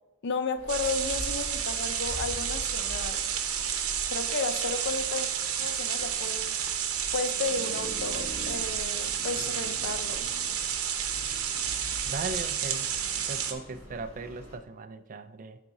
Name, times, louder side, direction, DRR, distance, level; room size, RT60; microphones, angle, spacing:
voice 1, 0.2-3.3 4.1-5.3 5.6-6.6 7.1-10.3, left 4 dB, 55° left, 0.5 m, -33 dB
sound 1, 0.6-14.6, equal, 25° left, 2.3 m, -44 dB
sound 2, 0.7-13.5, right 8 dB, 80° right, 0.8 m, -31 dB
voice 2, 12.0-12.9 13.3-15.6, right 3 dB, 35° right, 0.4 m, -38 dB
11.5 x 4.2 x 2.7 m
head